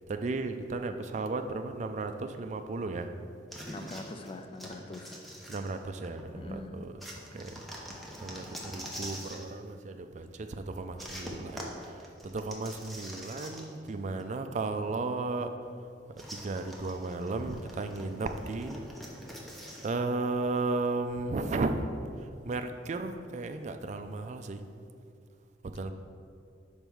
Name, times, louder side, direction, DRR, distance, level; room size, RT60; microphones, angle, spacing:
voice 1, 0.1-3.1 5.5-6.9 7.3-7.5 8.2-11.9 12.2-15.5 16.2-18.8 19.8-21.9 22.5-24.6 25.7-25.9, right 3 dB, 40° right, 8 dB, 0.4 m, -34 dB
sound 1, 3.5-6.2 7.0-9.5 11.0-13.9 14.2-14.3 16.2-19.9, equal, ahead, 0.7 m, -44 dB
voice 2, 3.7-5.2 6.3-6.8, left 2 dB, 30° left, 7 dB, 0.4 m, -42 dB
5.3 x 4.4 x 6.1 m, 2.4 s
head